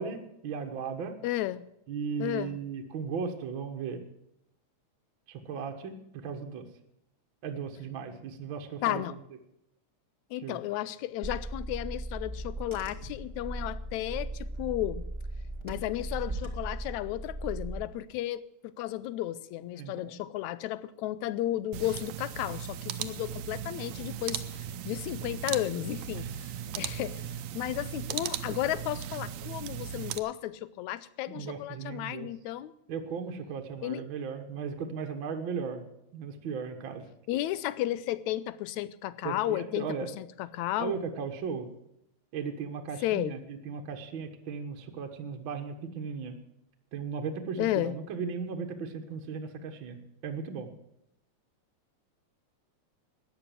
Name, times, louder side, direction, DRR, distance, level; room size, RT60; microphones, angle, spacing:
voice 1, 0.0-1.1 1.9-4.0 5.3-6.7 7.4-9.0 10.4-10.6 19.7-20.2 26.2-26.3 31.3-32.3 32.9-37.1 39.2-40.1 40.8-41.7 42.3-46.4 46.9-50.7, right 6 dB, 50° right, 1.6 m, -36 dB
voice 2, 1.2-1.6 2.2-2.6 8.8-9.2 10.3-15.1 15.6-27.3 27.5-32.7 33.8-34.1 37.3-41.0 43.0-43.4 47.6-48.0, left 14 dB, 80° left, 1.9 m, -33 dB
Car / Engine, 11.2-17.8, right 1 dB, 15° right, 1.1 m, -37 dB
sound 1, 21.7-30.2, right 10 dB, 75° right, 2.0 m, -37 dB
14.0 x 9.7 x 7.4 m
omnidirectional pair, 3.5 m